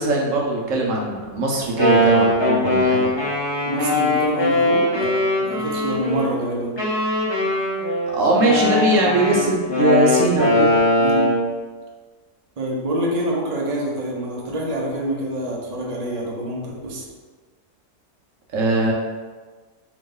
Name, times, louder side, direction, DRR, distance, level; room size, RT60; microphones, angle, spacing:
voice 1, 0.0-3.1 8.1-10.8 18.5-18.9, right 2 dB, 60° right, -2 dB, 1.0 m, -20 dB
Wind instrument woodwind instrument, 1.5-6.3 6.8-11.5, left 1 dB, 25° left, 0.6 m, -20 dB
voice 2, 3.6-5.1 5.4-6.7 11.0-11.3 12.6-17.1, right 1 dB, 40° right, -3 dB, 0.5 m, -26 dB
3.9 x 3.0 x 3.7 m, 1.4 s
omnidirectional pair, 1.7 m